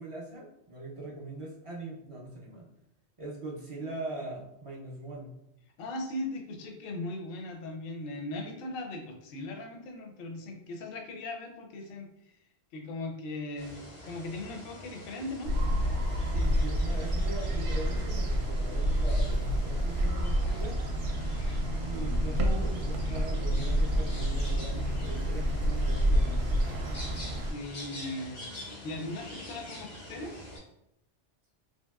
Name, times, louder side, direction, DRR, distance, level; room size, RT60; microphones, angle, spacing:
voice 1, 0.0-2.7 3.2-5.4 16.3-20.8 21.8-26.6, right 2 dB, 45° right, -4 dB, 0.4 m, -41 dB
voice 2, 5.8-12.3 12.7-13.8 14.0-15.6 27.5-28.4 28.8-30.4, left 2 dB, 65° left, 2 dB, 0.7 m, -38 dB
sound 1, 13.6-30.6, left 1 dB, 90° left, 1.3 m, -46 dB
sound 2, 15.4-27.5, equal, 70° right, 0.8 m, -28 dB
2.8 x 2.7 x 2.3 m, 0.82 s
omnidirectional pair, 1.2 m